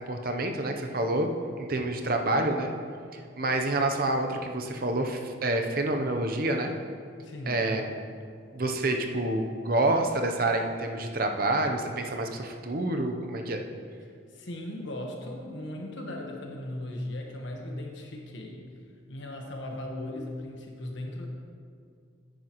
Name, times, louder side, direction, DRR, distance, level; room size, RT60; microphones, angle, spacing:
voice 1, 0.1-1.3 1.6-2.7 3.1-6.7 7.5-8.2 8.5-13.6, right 2 dB, 45° right, 4 dB, 0.7 m, -28 dB
voice 2, 7.2-7.6 14.3-18.7 19.1-21.3, left 1 dB, 70° left, 1 dB, 1.3 m, -37 dB
10.0 x 9.5 x 3.0 m, 2.2 s
head